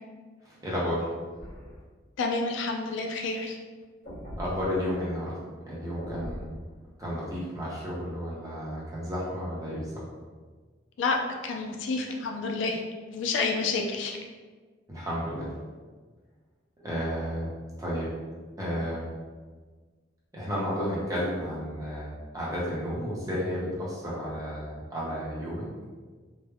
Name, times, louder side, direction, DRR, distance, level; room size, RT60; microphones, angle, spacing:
voice 1, 0.4-1.1 4.4-5.3 5.7-6.6 7.0-9.9 14.9-15.5 16.8-17.5 17.8-18.1 18.6-19.0 20.3-25.7, equal, 20° right, -7 dB, 0.7 m, -32 dB
sound 1, 1.4-1.8 3.8-4.8 6.0-6.4, equal, 55° left, 0.9 m, -40 dB
voice 2, 2.2-3.6 11.0-14.2, left 3 dB, 80° left, 2 dB, 0.3 m, -29 dB
3.2 x 2.0 x 2.2 m, 1.4 s
head